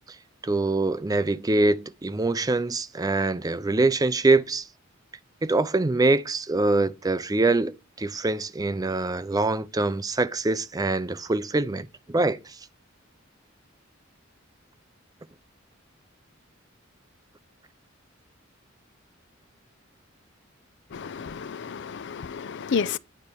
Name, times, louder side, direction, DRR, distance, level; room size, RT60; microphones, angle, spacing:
voice 1, 0.4-4.7 5.4-12.6, right 2 dB, 20° right, 0.5 m, -24 dB
voice 2, 20.9-23.0, left 6 dB, 60° left, 0.5 m, -31 dB
9.7 x 4.3 x 6.8 m
head